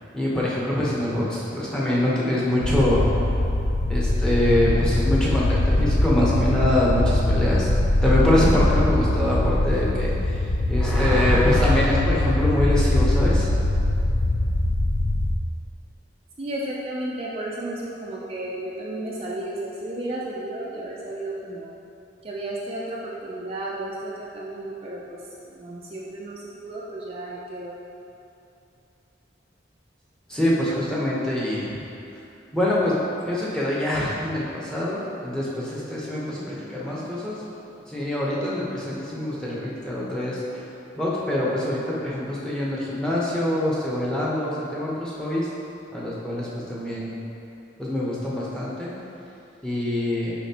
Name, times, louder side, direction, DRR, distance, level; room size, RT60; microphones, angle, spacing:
voice 1, 0.1-3.0 3.9-7.7 8.0-10.4 10.7-13.5 30.3-31.7 32.5-32.9 33.2-37.4 37.9-40.7 40.9-45.5 45.9-47.2 47.8-48.9 49.6-50.3, left 1 dB, 5° left, -7 dB, 0.8 m, -24 dB
sound 1, 2.6-15.4, left 1 dB, 35° left, 0.4 m, -22 dB
voice 2, 16.4-21.7 22.2-25.2 25.5-27.7, right 1 dB, 30° right, -4 dB, 0.4 m, -33 dB
6.9 x 5.0 x 2.9 m, 2.8 s
head